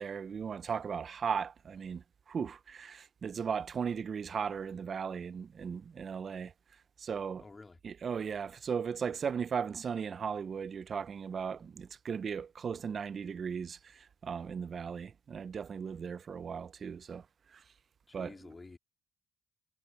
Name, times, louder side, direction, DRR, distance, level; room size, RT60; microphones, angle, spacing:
voice 1, 0.0-6.5 7.0-7.5 7.8-17.3 17.5-17.6 18.1-18.4, right 6 dB, 50° right, 0.5 m, -37 dB
voice 2, 7.4-7.8 18.1-18.8, left 3 dB, 25° left, 2.1 m, -50 dB
cardioid pair, 90°, 0 cm